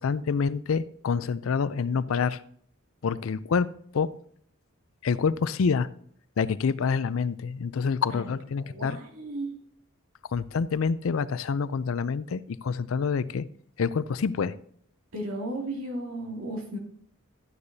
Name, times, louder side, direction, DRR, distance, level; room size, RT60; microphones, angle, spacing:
voice 1, 0.0-2.4 3.0-3.7 3.9-4.1 5.0-5.9 6.4-9.0 10.3-13.4 13.8-14.5, left 5 dB, 70° left, 16 dB, 0.4 m, -27 dB
voice 2, 8.7-9.6 15.1-16.8, right 1 dB, 85° right, 0 dB, 2.5 m, -34 dB
13.0 x 9.6 x 2.7 m, 0.64 s
head